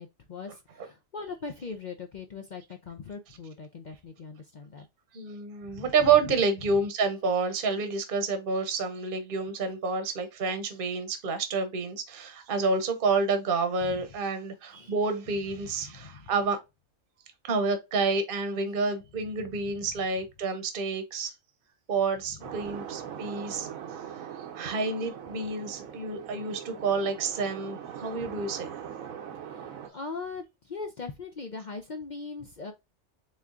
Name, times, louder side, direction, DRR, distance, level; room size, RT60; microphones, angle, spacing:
voice 1, 0.0-4.9 5.6-6.3 13.8-14.1 14.7-14.9 15.6-16.3 28.2-28.3 29.5-32.7, left 4 dB, 55° left, 0.5 m, -40 dB
voice 2, 5.1-16.6 17.4-21.3 21.9-23.7 24.5-28.7, right 4 dB, 45° right, 1.0 m, -29 dB
sound 1, 22.4-29.9, right 8 dB, 85° right, 1.2 m, -41 dB
4.3 x 3.6 x 2.4 m
omnidirectional pair, 1.4 m